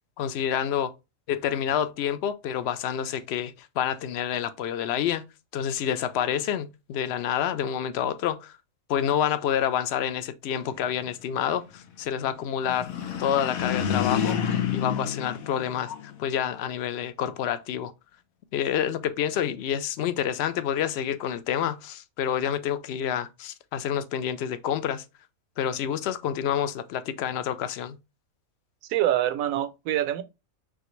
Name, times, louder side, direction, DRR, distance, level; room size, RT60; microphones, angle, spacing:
voice 1, 0.2-0.9 1.3-5.2 5.5-8.6 8.9-12.9 13.2-14.4 14.7-17.9 18.5-25.0 25.6-28.0, left 9 dB, 65° left, 0.7 m, -28 dB
sound 1, 12.7-16.3, left 8 dB, 85° left, 1.2 m, -28 dB
voice 2, 28.9-30.2, right 12 dB, 80° right, 1.0 m, -25 dB
4.4 x 3.3 x 3.1 m
omnidirectional pair, 1.5 m